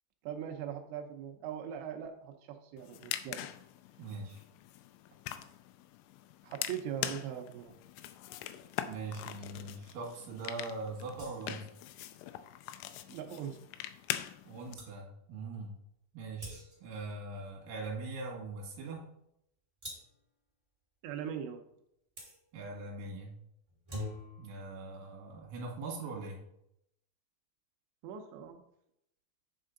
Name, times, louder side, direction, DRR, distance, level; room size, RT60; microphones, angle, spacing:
voice 1, 0.2-3.5 6.4-7.8 13.1-13.6 21.0-21.7 28.0-28.6, right 9 dB, 80° right, 4 dB, 2.6 m, -41 dB
sound 1, 2.8-14.7, left 13 dB, 85° left, 2.8 m, -43 dB
voice 2, 4.0-4.4 8.8-11.7 14.4-15.8 16.1-19.1 22.5-23.4 24.4-26.4, right 3 dB, 55° right, -1 dB, 2.9 m, -41 dB
sound 2, 11.1-11.7 14.4-14.5 14.8-15.0 16.4-17.0 19.8-20.2 22.2-22.4 23.7-24.5, left 1 dB, 15° right, 1.4 m, -44 dB
9.5 x 5.6 x 3.8 m, 0.77 s
omnidirectional pair, 6.0 m